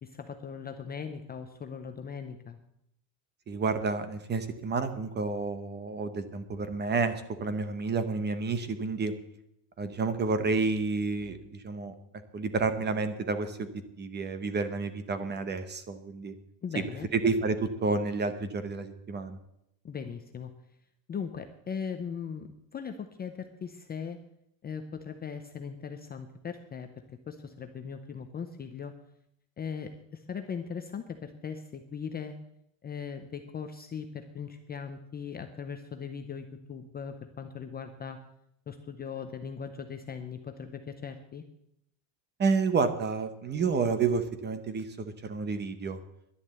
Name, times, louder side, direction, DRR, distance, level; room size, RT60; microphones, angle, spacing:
voice 1, 0.0-2.6 16.6-17.1 19.8-20.5 21.1-24.2 24.6-26.9 27.3-28.9 29.6-32.4 32.8-38.2 38.7-41.4, left 6 dB, 20° left, 6 dB, 0.6 m, -39 dB
voice 2, 3.5-9.1 9.8-11.9 12.3-16.3 17.1-19.4 42.4-46.0, right 4 dB, 20° right, 11 dB, 0.8 m, -30 dB
11.0 x 10.5 x 8.0 m, 0.78 s
cardioid pair, 175°, 49 cm